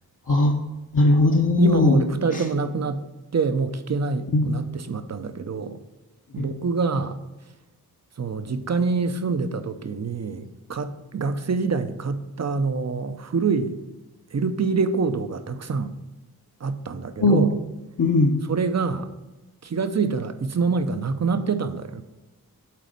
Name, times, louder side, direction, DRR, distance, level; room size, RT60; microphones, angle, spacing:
voice 1, 0.3-0.6 0.9-2.0 4.3-4.5 6.4-6.5 17.2-17.5 18.0-18.3, left 2 dB, 55° left, 0.9 m, -18 dB
voice 2, 1.6-3.0 3.3-5.8 6.3-7.2 8.2-13.8 14.3-15.9 16.6-17.5 18.5-19.1 19.6-22.0, right 4 dB, 45° right, 0.7 m, -25 dB
7.5 x 4.1 x 5.3 m
cardioid pair, 40°, 38 cm